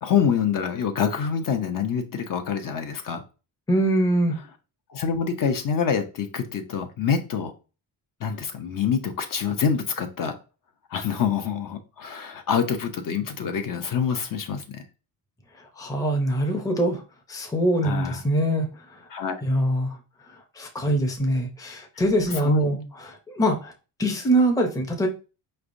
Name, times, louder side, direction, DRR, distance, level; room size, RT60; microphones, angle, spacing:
voice 1, 0.0-3.2 4.9-7.5 8.2-10.4 10.9-14.8 17.8-18.2 19.1-19.4 22.3-22.8, left 7 dB, 50° left, 6 dB, 0.7 m, -26 dB
voice 2, 3.7-4.4 15.8-17.0 17.3-18.7 19.4-20.0 20.6-23.7 24.0-25.1, right 1 dB, 10° left, 3 dB, 0.6 m, -23 dB
4.9 x 3.3 x 2.5 m, 0.32 s
cardioid pair, 130°, 42 cm